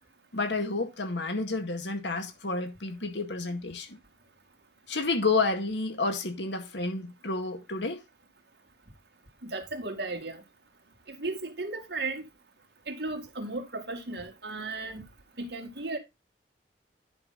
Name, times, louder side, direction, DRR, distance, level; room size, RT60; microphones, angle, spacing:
voice 1, 0.3-4.0 4.9-8.0, left 3 dB, 85° left, 2.0 m, -30 dB
voice 2, 9.4-10.4 11.1-12.2 12.9-15.0 15.4-16.0, right 2 dB, 70° right, 2.3 m, -35 dB
10.5 x 5.7 x 4.0 m
head